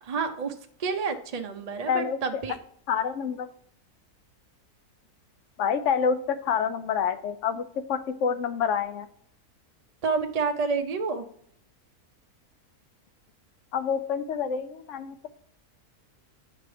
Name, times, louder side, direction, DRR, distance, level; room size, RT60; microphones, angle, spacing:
voice 1, 0.0-2.6 10.0-11.3, right 5 dB, 45° right, 6 dB, 0.5 m, -29 dB
voice 2, 1.9-2.4 2.9-3.5 5.6-9.1 13.7-15.3, left 6 dB, 65° left, 12 dB, 0.8 m, -27 dB
9.6 x 3.3 x 6.9 m, 0.66 s
omnidirectional pair, 1.6 m